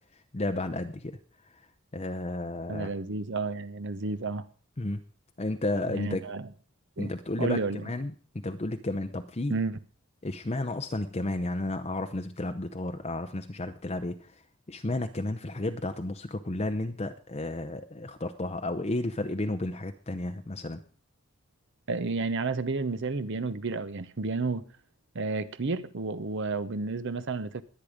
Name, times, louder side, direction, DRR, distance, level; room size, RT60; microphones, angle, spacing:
voice 1, 0.3-1.2 1.9-2.9 4.8-5.0 5.4-6.2 7.0-9.6 10.2-14.3 14.7-20.8, left 2 dB, 30° left, 0.7 m, -32 dB
voice 2, 2.7-4.5 5.9-6.5 7.0-7.1 7.4-7.8 9.5-9.8 21.9-24.6 25.1-27.6, right 3 dB, 55° right, 0.7 m, -31 dB
21.5 x 8.6 x 5.0 m
head